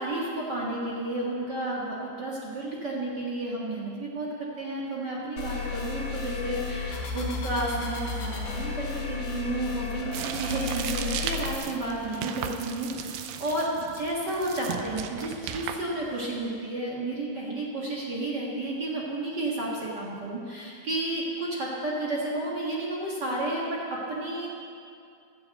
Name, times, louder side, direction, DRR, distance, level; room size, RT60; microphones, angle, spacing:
voice 1, 0.0-13.7 13.9-24.5, right 2 dB, 45° right, -4 dB, 1.4 m, -32 dB
sound 1, 5.4-11.6, left 5 dB, 80° left, 3.9 m, -33 dB
sound 2, 10.1-16.5, right 9 dB, 85° right, 2.6 m, -36 dB
14.5 x 7.6 x 7.8 m, 2.4 s
omnidirectional pair, 4.4 m